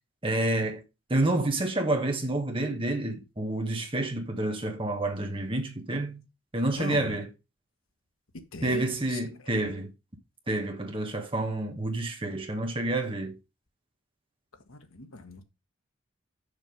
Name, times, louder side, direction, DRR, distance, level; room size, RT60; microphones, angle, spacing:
voice 1, 0.2-0.8 1.1-6.2 6.5-7.3 8.6-9.9 10.5-13.4, right 2 dB, 25° right, 1.5 m, -29 dB
voice 2, 6.7-7.2 8.5-9.2 14.7-15.4, left 2 dB, 90° left, 1.5 m, -39 dB
6.7 x 5.8 x 5.3 m
head